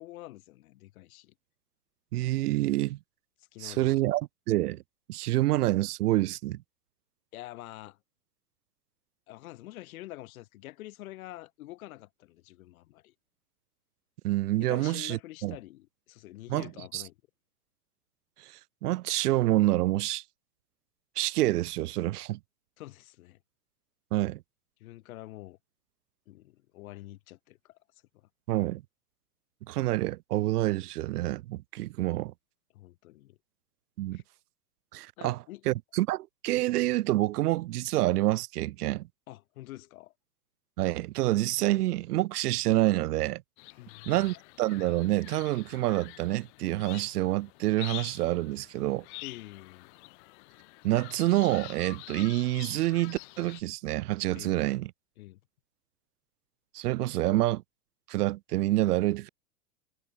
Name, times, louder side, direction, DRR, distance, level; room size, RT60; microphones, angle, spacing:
voice 1, 0.0-1.3 3.5-4.2 7.3-8.0 9.3-13.1 14.6-17.1 22.8-23.4 24.8-25.6 26.3-27.8 28.1-28.2 32.7-33.4 34.1-34.2 35.2-35.6 39.3-40.1 43.8-44.1 49.2-49.9 54.3-54.6 55.2-55.4, left 17 dB, 65° left, 1.5 m, -46 dB
voice 2, 2.1-3.0 3.6-4.8 5.1-6.6 14.2-15.6 16.5-17.0 18.4-20.2 21.2-22.4 24.1-24.4 28.5-28.8 29.7-32.3 34.0-34.2 34.9-39.1 40.8-43.4 44.1-49.0 50.8-54.9 56.7-57.6 58.1-59.3, right 16 dB, 80° right, 0.6 m, -27 dB
sound 1, 43.6-53.6, left 28 dB, 45° left, 1.3 m, -47 dB
hypercardioid pair, 125°, 46 cm